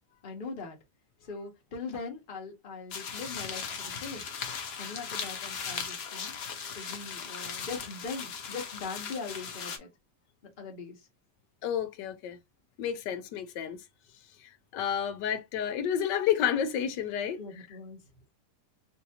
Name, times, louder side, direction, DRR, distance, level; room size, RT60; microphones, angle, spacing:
voice 1, 0.2-0.8 1.2-4.3 4.8-6.3 6.7-9.9 10.6-11.1 17.4-18.0, left 4 dB, 35° left, 1.0 m, -41 dB
sound 1, 2.9-9.8, left 6 dB, 60° left, 0.6 m, -38 dB
voice 2, 11.6-12.4 12.8-13.8 14.7-17.4, left 9 dB, 85° left, 1.3 m, -30 dB
3.8 x 2.6 x 2.8 m
omnidirectional pair, 1.8 m